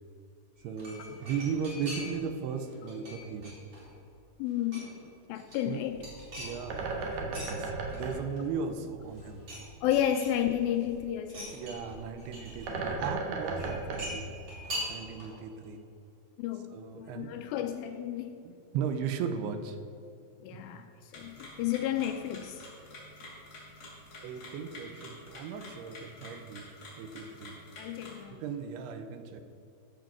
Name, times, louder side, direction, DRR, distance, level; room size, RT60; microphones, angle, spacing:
sound 1, 0.6-2.3 2.6-4.0 4.4-5.0 5.3-7.5 7.9-8.8 9.1-9.6 9.9-10.8 11.2-12.7 13.6-15.4 15.6-15.7, equal, 35° right, 3.4 m, -42 dB
voice 1, 0.6-3.6 5.7-5.9 6.4-9.5 11.5-14.3 14.9-15.9 16.7-17.4 18.4-19.8 20.5-20.6 24.2-26.7 27.0-27.6 28.3-29.4, right 6 dB, 85° right, 8 dB, 2.8 m, -37 dB
voice 2, 4.4-4.9 5.3-6.0 9.8-11.6 16.4-18.4 20.4-22.7 27.8-28.4, left 11 dB, 80° left, 7 dB, 2.2 m, -32 dB
Bird, 5.9-15.0, right 3 dB, 65° right, 2.6 m, -38 dB
sound 2, 21.1-28.2, left 2 dB, 40° left, 3.5 m, -49 dB
14.5 x 5.3 x 5.8 m, 2.6 s
omnidirectional pair, 4.5 m